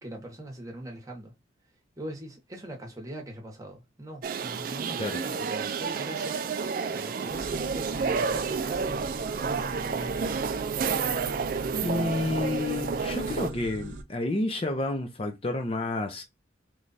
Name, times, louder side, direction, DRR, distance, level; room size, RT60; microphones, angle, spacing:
voice 1, 0.0-1.3 2.0-6.4 6.9-9.0 9.4-10.7, right 1 dB, 15° right, 1.0 m, -41 dB
sound 1, 4.2-13.5, right 5 dB, 45° right, 0.3 m, -30 dB
sound 2, 7.3-14.0, right 2 dB, 85° right, 0.7 m, -40 dB
voice 2, 11.8-16.2, left 2 dB, 30° left, 0.5 m, -30 dB
3.2 x 2.4 x 3.9 m
head